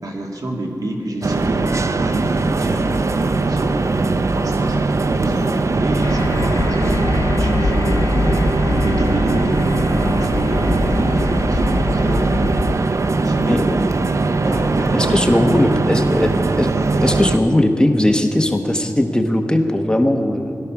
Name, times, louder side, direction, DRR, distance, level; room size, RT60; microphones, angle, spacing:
voice 1, 0.0-3.8 4.3-8.1 8.8-12.3 12.9-13.9 14.4-15.9, right 1 dB, 75° right, 0 dB, 2.0 m, -28 dB
sound 1, 1.2-17.4, right 3 dB, 55° right, 0.5 m, -20 dB
sound 2, 6.0-12.7, left 3 dB, 85° left, 1.0 m, -23 dB
voice 2, 14.9-16.7 17.0-20.6, left 1 dB, 15° left, 4 dB, 1.0 m, -18 dB
17.0 x 12.5 x 5.9 m, 2.6 s
wide cardioid pair, 90°, 6 cm